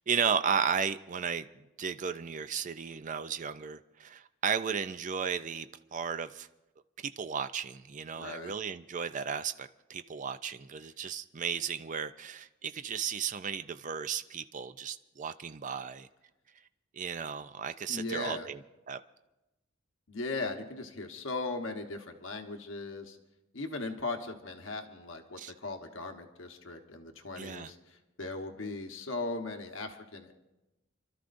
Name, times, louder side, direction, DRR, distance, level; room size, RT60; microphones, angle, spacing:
voice 1, 0.1-1.5 1.8-6.5 7.0-16.1 16.9-18.6 18.9-19.0 25.4-25.5 27.4-27.7, right 7 dB, 40° right, 0.4 m, -34 dB
voice 2, 8.2-8.5 17.9-18.5 20.1-23.2 23.5-30.3, left 3 dB, 75° left, 1.1 m, -38 dB
30.0 x 13.0 x 2.6 m
head